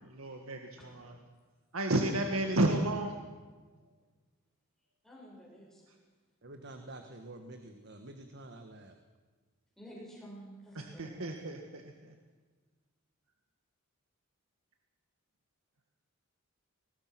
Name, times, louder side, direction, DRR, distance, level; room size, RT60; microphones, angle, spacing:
voice 1, 0.2-1.1 1.7-3.2 10.8-12.1, right 1 dB, 90° right, 3 dB, 1.8 m, -32 dB
voice 2, 5.0-5.8 9.8-11.1, equal, ahead, -4 dB, 6.2 m, -50 dB
voice 3, 6.4-8.9, right 2 dB, 55° right, 6 dB, 1.5 m, -48 dB
22.5 x 19.5 x 6.1 m, 1.4 s
head